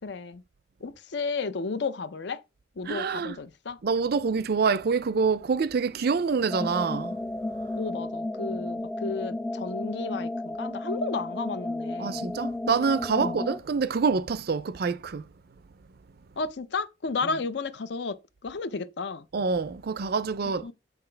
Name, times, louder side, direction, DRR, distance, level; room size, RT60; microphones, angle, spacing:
voice 1, 0.0-0.4 0.8-2.4 2.8-3.8 7.8-12.3 13.2-13.4 16.4-19.3 20.6-20.7, left 4 dB, 60° left, 0.5 m, -33 dB
voice 2, 2.9-3.4 3.8-7.2 12.0-15.2 19.3-20.7, right 5 dB, 55° right, 0.4 m, -26 dB
sound 1, 6.5-13.6, left 1 dB, 10° left, 0.3 m, -33 dB
7.5 x 5.7 x 3.3 m
head